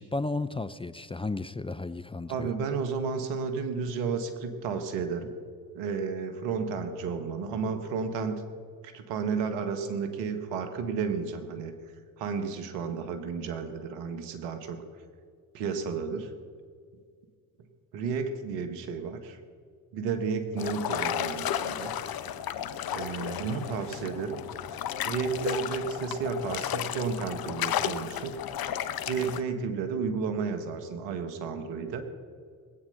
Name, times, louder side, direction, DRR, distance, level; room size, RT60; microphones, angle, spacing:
voice 1, 0.0-2.5, left 3 dB, 15° left, 13 dB, 0.6 m, -33 dB
voice 2, 2.3-5.3 5.7-8.4 8.8-11.7 12.2-14.8 15.5-16.3 17.9-19.4 19.9-21.9 22.9-24.4 25.1-28.4 29.1-32.0, right 5 dB, 80° right, 7 dB, 1.7 m, -32 dB
sound 1, 20.6-29.4, left 10 dB, 55° left, 1.0 m, -33 dB
20.0 x 8.9 x 6.8 m, 2.1 s
hypercardioid pair, 55°, 43 cm